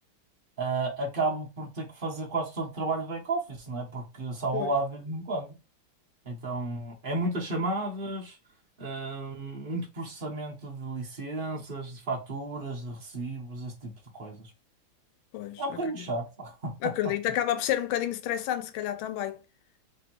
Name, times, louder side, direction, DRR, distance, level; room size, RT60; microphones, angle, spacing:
voice 1, 0.6-5.6 6.2-8.4 8.8-14.5 15.6-16.7, right 2 dB, 60° right, 0.5 m, -33 dB
voice 2, 15.3-16.1 16.8-19.4, left 12 dB, 75° left, 1.4 m, -30 dB
3.4 x 2.8 x 4.3 m
omnidirectional pair, 2.4 m